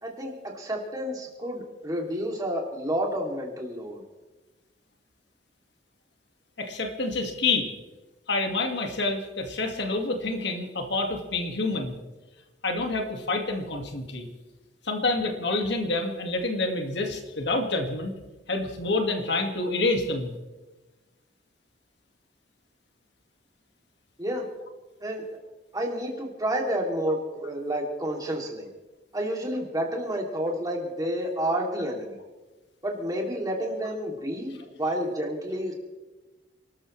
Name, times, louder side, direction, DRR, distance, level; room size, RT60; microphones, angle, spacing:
voice 1, 0.0-4.0 24.2-24.4 25.0-25.2 25.7-28.7 29.1-32.2 32.8-35.7, right 1 dB, 20° right, 0 dB, 3.0 m, -30 dB
voice 2, 6.6-7.7 8.3-12.0 12.6-14.3 14.8-18.1 18.5-20.4 34.6-34.7, left 2 dB, 65° left, 3 dB, 2.1 m, -28 dB
28.5 x 13.5 x 3.3 m, 1.1 s
head